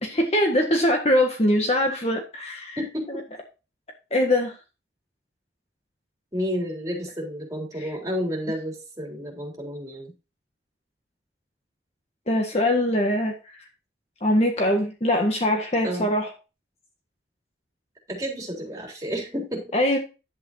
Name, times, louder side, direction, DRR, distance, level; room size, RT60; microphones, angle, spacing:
voice 1, 0.0-2.8 4.1-4.5 7.8-7.9 12.3-13.4 14.2-16.3 19.7-20.0, left 1 dB, 35° left, 3 dB, 1.6 m, -22 dB
voice 2, 2.8-3.1 6.3-10.1 15.8-16.1 18.1-19.7, equal, 20° right, -2 dB, 3.8 m, -31 dB
11.0 x 8.7 x 2.7 m, 0.30 s
head